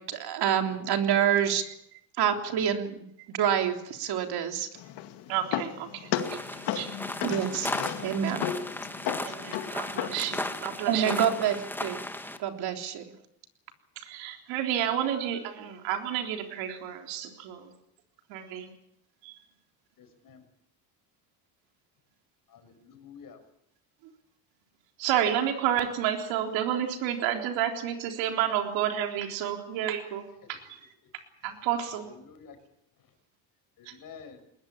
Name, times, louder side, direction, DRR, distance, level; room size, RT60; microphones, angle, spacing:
voice 1, 0.1-1.6 2.2-4.7 7.2-7.7 8.0-8.5 10.9-12.0 12.4-13.1, right 9 dB, 55° right, 5 dB, 3.4 m, -27 dB
sound 1, 4.8-10.6, left 10 dB, 65° left, 2.3 m, -35 dB
voice 2, 5.3-7.0 9.2-11.2 14.0-17.7 18.3-18.7 19.2-19.4 25.0-30.8 31.4-32.1 33.9-34.0, right 10 dB, 80° right, 4 dB, 3.8 m, -30 dB
sound 2, 6.1-12.4, left 1 dB, 5° left, 1.9 m, -36 dB
voice 3, 20.0-20.4 22.5-23.4 30.4-30.5 31.9-32.6 33.8-34.4, left 6 dB, 50° left, 8 dB, 6.1 m, -49 dB
20.5 x 20.5 x 8.7 m, 0.76 s
cardioid pair, 110°, 45 cm